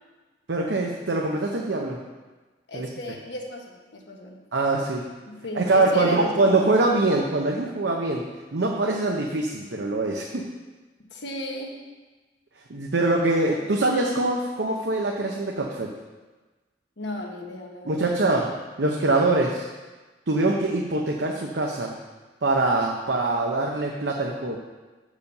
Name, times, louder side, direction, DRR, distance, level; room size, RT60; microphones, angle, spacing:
voice 1, 0.5-2.0 2.7-2.9 4.5-5.1 5.6-8.3 8.5-10.4 12.7-15.9 17.8-18.5 18.8-19.7 20.3-22.0 22.4-24.6, right 2 dB, 80° right, 0 dB, 0.8 m, -23 dB
voice 2, 2.7-4.4 5.2-6.7 11.1-11.8 13.5-13.7 17.0-18.1, left 1 dB, 85° left, 1 dB, 1.3 m, -35 dB
7.0 x 5.0 x 6.6 m, 1.2 s
head